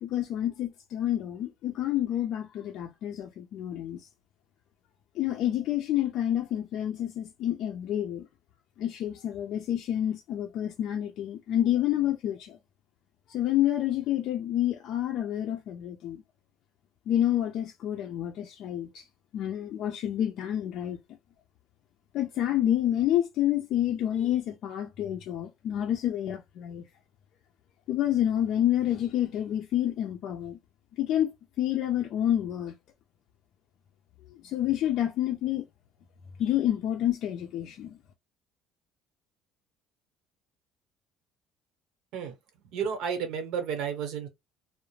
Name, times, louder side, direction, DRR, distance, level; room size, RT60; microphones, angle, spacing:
voice 1, 0.0-4.1 5.2-8.2 8.8-12.6 13.3-16.2 17.1-19.0 19.3-21.0 22.1-26.8 27.9-30.6 31.0-32.7 34.4-35.6 36.4-37.9, left 11 dB, 65° left, 0.4 m, -28 dB
voice 2, 42.7-44.3, right 7 dB, 75° right, 0.9 m, -31 dB
2.3 x 2.0 x 3.1 m
cardioid pair, 100°, 0 cm